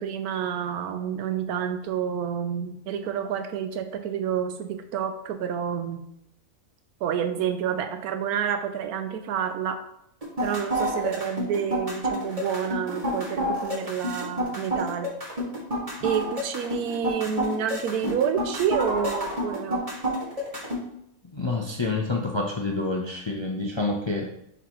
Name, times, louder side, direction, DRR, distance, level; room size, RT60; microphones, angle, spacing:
voice 1, 0.0-6.0 7.0-9.8 10.4-15.1 16.0-19.8, right 8 dB, 90° right, 7 dB, 1.1 m, -29 dB
sound 1, 10.2-20.8, equal, 25° right, 2.0 m, -29 dB
voice 2, 21.3-24.3, left 3 dB, 45° left, 0 dB, 0.3 m, -28 dB
10.0 x 4.0 x 3.0 m, 0.77 s
omnidirectional pair, 1.5 m